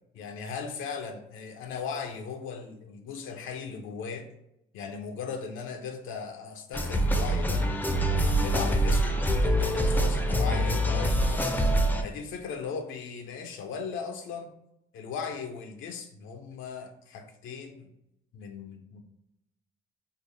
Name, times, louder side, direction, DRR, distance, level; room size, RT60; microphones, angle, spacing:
voice 1, 0.1-4.3 4.7-7.7 8.1-11.6 12.0-14.5 14.9-17.9 18.3-19.0, left 5 dB, 80° left, 4 dB, 0.5 m, -37 dB
sound 1, 6.7-12.0, right 1 dB, 10° left, 0.4 m, -25 dB
3.6 x 2.0 x 3.2 m, 0.83 s
cardioid pair, 90°, 20 cm